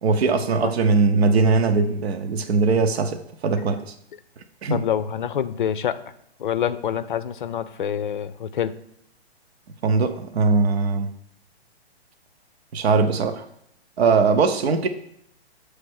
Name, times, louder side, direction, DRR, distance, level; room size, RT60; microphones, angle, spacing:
voice 1, 0.0-3.8 4.6-4.8 9.8-11.1 12.7-13.4 14.0-14.9, right 4 dB, 70° right, 7 dB, 0.8 m, -20 dB
voice 2, 4.7-6.0 6.4-8.8, left 9 dB, 50° left, 13 dB, 0.5 m, -26 dB
7.8 x 3.3 x 6.3 m, 0.75 s
hypercardioid pair, 165°, 32 cm